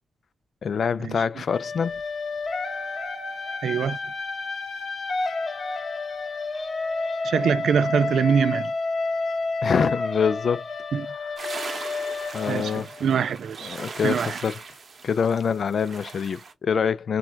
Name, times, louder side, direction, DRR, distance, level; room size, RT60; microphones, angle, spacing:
voice 1, 0.6-2.0 9.6-10.6 12.3-12.9 13.6-14.6 15.0-17.2, left 6 dB, 60° left, 0.3 m, -25 dB
sound 1, 1.5-13.3, left 3 dB, 35° left, 0.8 m, -30 dB
voice 2, 3.6-4.0 7.2-8.7 10.9-11.1 12.5-13.8 14.0-14.4, right 7 dB, 90° right, 0.3 m, -24 dB
sound 2, 11.4-16.5, right 4 dB, 50° right, 0.6 m, -39 dB
4.3 x 2.3 x 2.3 m
wide cardioid pair, 145°, 0 cm